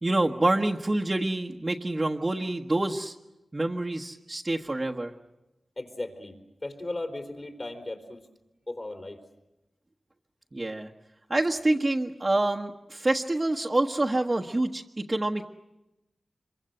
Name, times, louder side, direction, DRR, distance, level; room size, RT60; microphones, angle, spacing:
voice 1, 0.0-3.1 3.5-5.1 10.5-10.9 11.3-15.5, right 2 dB, 30° right, 1 dB, 1.3 m, -27 dB
voice 2, 5.8-6.3 6.6-8.2 8.7-9.2, left 2 dB, 40° left, 4 dB, 3.9 m, -36 dB
26.0 x 24.0 x 7.9 m, 0.96 s
cardioid pair, 65°, 0 cm